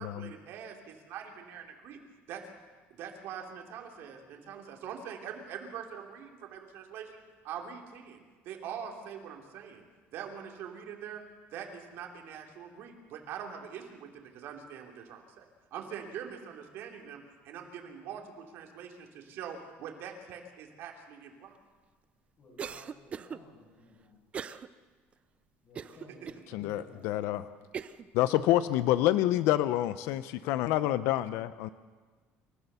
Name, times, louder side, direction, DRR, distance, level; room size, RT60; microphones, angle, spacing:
voice 1, 0.0-2.0 2.3-2.4 2.9-9.8 10.1-11.2 11.5-15.5 15.7-21.6 25.9-26.3, right 8 dB, 60° right, 2 dB, 3.0 m, -43 dB
voice 2, 22.4-24.2 25.6-26.3 26.6-27.7, left 3 dB, 45° left, 0 dB, 6.2 m, -55 dB
Cough, 22.6-23.4 24.3-24.7 25.1-25.2 25.8-26.4 27.0-27.1 27.7-28.1, right 7 dB, 30° right, 0.6 m, -39 dB
voice 3, 26.5-27.5 28.1-31.7, left 14 dB, 80° left, 14 dB, 0.7 m, -27 dB
27.5 x 14.0 x 6.9 m, 1.4 s
cardioid pair, 160°, 4 cm